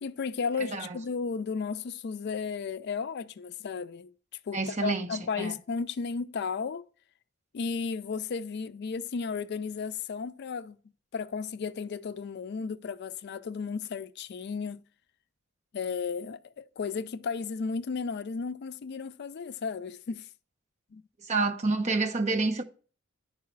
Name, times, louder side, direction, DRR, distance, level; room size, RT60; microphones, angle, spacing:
voice 1, 0.0-4.1 4.5-6.8 7.5-10.8 11.1-14.8 15.7-20.3 20.9-21.0, left 5 dB, 55° left, 0.4 m, -34 dB
voice 2, 4.5-5.5 21.3-22.6, right 3 dB, 35° right, 0.8 m, -28 dB
10.5 x 4.7 x 4.5 m
head